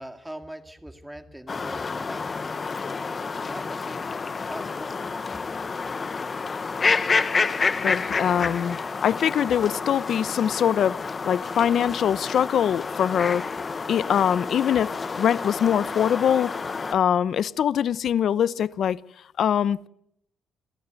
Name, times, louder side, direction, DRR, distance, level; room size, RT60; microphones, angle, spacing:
voice 1, 0.0-2.5 3.2-4.0 4.5-5.2, right 1 dB, 5° right, 2.3 m, -42 dB
sound 1, 1.5-16.9, left 4 dB, 35° left, 1.1 m, -29 dB
voice 2, 7.8-11.0 11.2-13.4 13.9-14.9 15.2-16.5 16.9-19.0 19.4-19.9, left 9 dB, 65° left, 0.7 m, -23 dB
28.5 x 13.0 x 8.2 m
cardioid pair, 90°, 0 cm